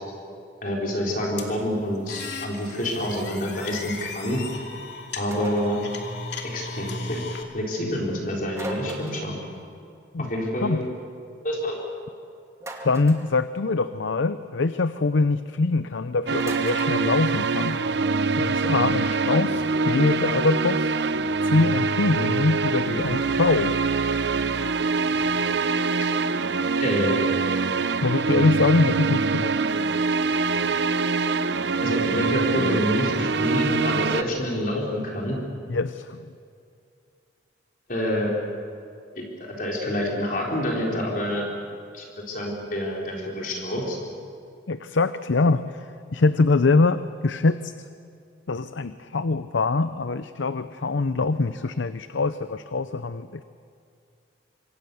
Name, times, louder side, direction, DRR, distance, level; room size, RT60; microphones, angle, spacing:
voice 1, 0.6-4.4 5.2-5.8 6.5-7.2 7.5-9.4 10.2-10.8 11.4-11.8 26.8-27.3 31.8-35.4 37.9-38.3 39.2-39.3 39.6-41.4 41.9-44.0, equal, 45° left, -2 dB, 4.4 m, -27 dB
sound 1, 1.4-7.4, left 3 dB, 70° left, 2.6 m, -36 dB
sound 2, 5.3-5.8 8.5-9.4 12.6-13.3 16.4-17.0, right 1 dB, 15° right, 2.4 m, -37 dB
voice 2, 12.8-17.8 18.4-21.0 21.4-23.7 28.0-29.6 35.7-36.2 44.7-45.8 46.1-47.7 48.5-53.4, left 3 dB, 85° left, 12 dB, 0.7 m, -23 dB
sound 3, 16.3-34.2, right 4 dB, 65° right, 0.8 m, -24 dB
26.0 x 24.5 x 7.1 m, 2.5 s
head